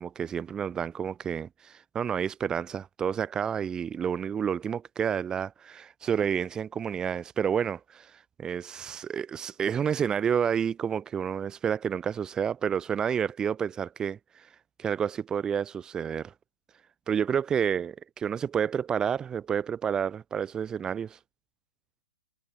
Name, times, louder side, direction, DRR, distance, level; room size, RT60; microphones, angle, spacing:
voice 1, 0.0-14.5 14.8-16.3 17.1-21.2, right 8 dB, 15° right, 4.1 m, -30 dB
hypercardioid pair, 125°, 4 cm